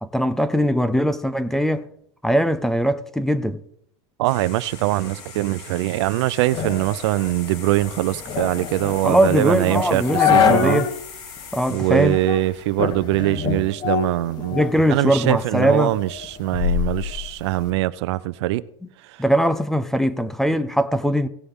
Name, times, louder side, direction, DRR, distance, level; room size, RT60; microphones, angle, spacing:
voice 1, 0.0-1.9 2.2-3.6 9.0-10.9 11.5-12.2 14.5-15.9 19.2-21.3, equal, 5° left, 0.4 m, -20 dB
sound 1, 4.2-13.4, left 6 dB, 70° left, 2.5 m, -40 dB
voice 2, 4.2-10.8 11.7-14.6 14.9-18.6, right 17 dB, 70° right, 0.5 m, -22 dB
sound 2, 6.5-11.0 11.4-11.5 12.1-12.5 12.8-14.9 15.3-17.7, left 8 dB, 30° left, 1.0 m, -24 dB
17.0 x 6.8 x 3.7 m
supercardioid pair, 150°, 15 cm